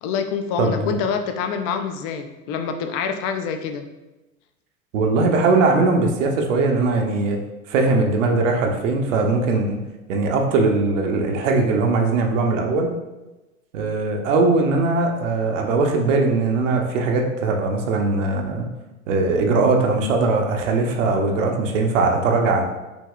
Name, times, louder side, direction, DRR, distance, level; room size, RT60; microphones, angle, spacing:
voice 1, 0.0-3.9, left 6 dB, 35° left, 7 dB, 0.4 m, -26 dB
voice 2, 0.6-0.9 4.9-7.4 7.7-9.8 10.1-12.9 13.7-18.7 19.1-22.6, right 3 dB, 65° right, 3 dB, 0.8 m, -20 dB
5.2 x 2.7 x 2.4 m, 1.1 s
hypercardioid pair, 90°, 42 cm